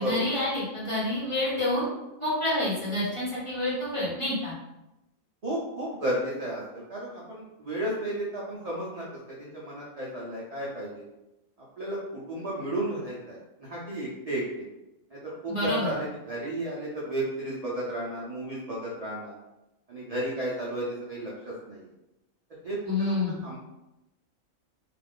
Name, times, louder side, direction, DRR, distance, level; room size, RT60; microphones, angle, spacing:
voice 1, 0.0-1.9 2.2-4.5 15.5-15.9 22.9-23.4, left 1 dB, 25° left, -8 dB, 0.9 m, -28 dB
voice 2, 5.4-9.1 9.4-11.0 11.8-12.0 12.3-14.4 15.1-19.3 19.9-21.9 22.6-23.6, right 1 dB, 55° right, -6 dB, 0.4 m, -33 dB
2.4 x 2.3 x 3.5 m, 0.94 s
omnidirectional pair, 1.4 m